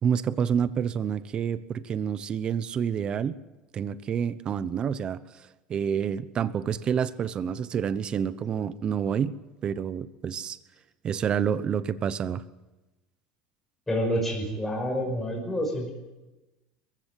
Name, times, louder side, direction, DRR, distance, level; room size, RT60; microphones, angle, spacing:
voice 1, 0.0-3.4 3.7-5.2 5.7-9.3 9.6-10.6 11.0-12.4, right 8 dB, 30° right, 15 dB, 0.9 m, -28 dB
voice 2, 13.9-15.9, equal, 10° left, 0 dB, 5.8 m, -28 dB
22.0 x 15.5 x 9.3 m, 1.1 s
cardioid pair, 140°, 3 cm